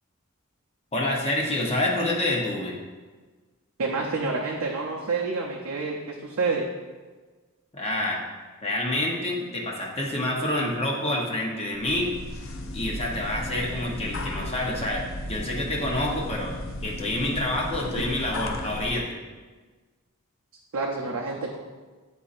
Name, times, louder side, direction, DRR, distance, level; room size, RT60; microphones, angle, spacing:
voice 1, 0.9-2.8 7.7-8.2 8.6-12.1 12.7-19.2, left 1 dB, 30° left, -2 dB, 0.9 m, -27 dB
voice 2, 3.8-6.7 20.7-21.6, right 3 dB, 80° right, -2 dB, 0.6 m, -28 dB
sound 1, 11.7-19.0, left 1 dB, 65° left, 0.5 m, -35 dB
9.9 x 4.1 x 2.5 m, 1.4 s
head